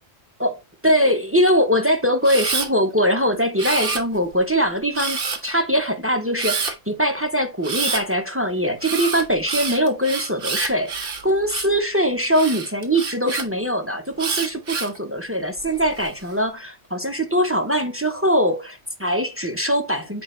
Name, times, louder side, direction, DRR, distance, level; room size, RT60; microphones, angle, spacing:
voice 1, 0.4-20.2, equal, 15° right, 0.5 m, -22 dB
Camera, 2.2-2.7 3.6-4.3 4.9-5.5 6.4-6.7 7.6-8.0 8.8-11.8 12.3-13.4 14.2-15.0 15.6-16.1, right 5 dB, 50° right, 1.2 m, -27 dB
6.9 x 4.5 x 3.1 m
omnidirectional pair, 1.3 m